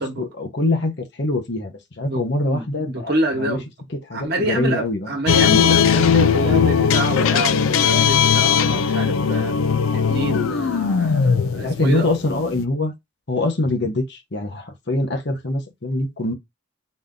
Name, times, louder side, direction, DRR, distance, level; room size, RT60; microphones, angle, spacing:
voice 1, 0.0-3.1 3.4-3.6 4.1-5.1 11.5-12.9 13.3-16.3, left 2 dB, 55° left, 1.1 m, -24 dB
voice 2, 2.0-3.6 4.1-9.5 9.9-12.1, right 1 dB, 50° right, 1.2 m, -27 dB
sound 1, 5.3-12.6, left 7 dB, 85° left, 0.4 m, -18 dB
4.2 x 2.7 x 3.7 m
head